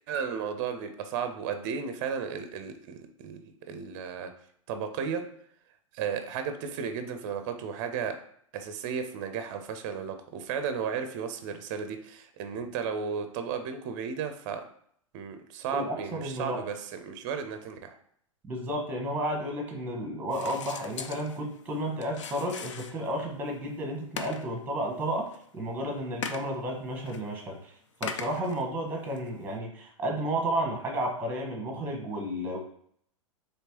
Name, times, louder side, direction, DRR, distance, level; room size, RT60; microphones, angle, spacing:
voice 1, 0.1-3.4 3.7-4.3 4.7-5.2 5.9-8.2 8.5-14.6 15.1-18.0, right 6 dB, 35° right, 8 dB, 0.5 m, -34 dB
voice 2, 15.7-16.6 18.4-27.7 28.0-32.6, right 1 dB, 10° right, 1 dB, 1.0 m, -32 dB
sound 1, 20.3-23.3 23.7-23.8 24.2-24.7 25.0-25.4 26.2-26.5 27.1-27.2 28.0-28.6 29.2-29.3, left 6 dB, 60° left, 0.5 m, -39 dB
4.4 x 3.1 x 2.9 m, 0.64 s
figure-of-eight pair, 105°, 18 cm